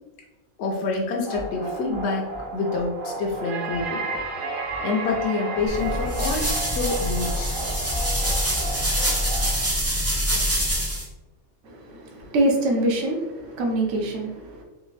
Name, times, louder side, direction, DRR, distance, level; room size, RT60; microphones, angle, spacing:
voice 1, 0.6-4.1 4.8-7.6, left 3 dB, 65° left, -1 dB, 0.8 m, -27 dB
sound 1, 1.2-9.7, right 3 dB, 50° right, 0.8 m, -33 dB
sound 2, 5.7-11.0, equal, 20° right, 0.4 m, -25 dB
voice 2, 11.6-14.6, right 1 dB, 75° right, 1 dB, 1.0 m, -25 dB
3.5 x 3.2 x 3.2 m, 1.1 s
omnidirectional pair, 1.3 m